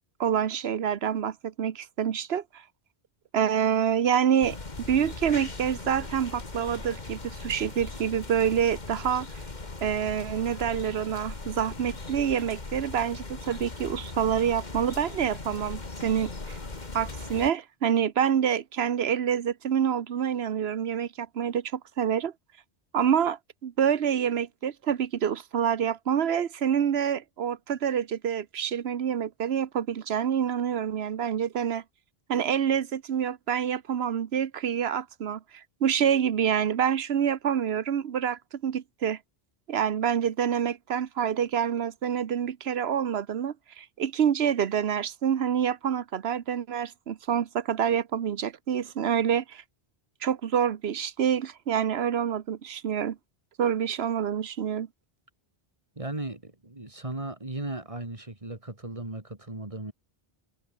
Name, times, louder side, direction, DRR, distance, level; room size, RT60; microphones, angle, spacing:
voice 1, 0.2-2.4 3.3-4.6 4.9-9.3 9.8-16.6 16.9-22.3 22.9-31.8 32.3-39.2 39.7-49.6 50.2-53.2 53.6-54.9, right 8 dB, 85° right, 1.1 m, -27 dB
sound 1, 4.4-17.5, left 3 dB, 45° left, 2.2 m, -39 dB
voice 2, 56.0-59.9, right 2 dB, 35° right, 2.7 m, -36 dB
omnidirectional pair, 1.0 m